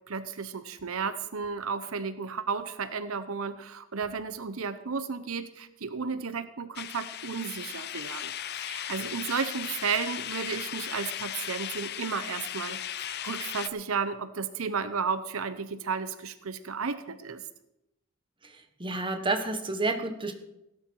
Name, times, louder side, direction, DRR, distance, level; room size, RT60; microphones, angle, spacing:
voice 1, 0.1-17.4, right 5 dB, 90° right, 12 dB, 0.8 m, -33 dB
sound 1, 6.8-13.7, left 11 dB, 50° left, 0.6 m, -37 dB
voice 2, 18.4-20.3, right 2 dB, 25° right, 5 dB, 1.4 m, -30 dB
16.5 x 11.5 x 4.7 m, 0.87 s
head